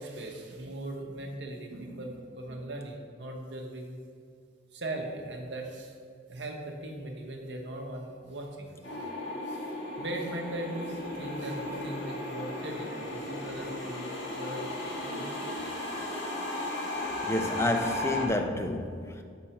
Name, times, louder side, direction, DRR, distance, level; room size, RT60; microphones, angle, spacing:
voice 1, 0.0-4.0 4.7-5.9 6.3-9.1 9.5-14.1 14.4-15.3, right 1 dB, 60° right, 1.0 m, -39 dB
sound 1, 8.8-18.3, left 2 dB, 55° left, 1.4 m, -35 dB
voice 2, 17.2-19.2, left 1 dB, 15° left, 0.4 m, -29 dB
6.2 x 4.3 x 5.6 m
head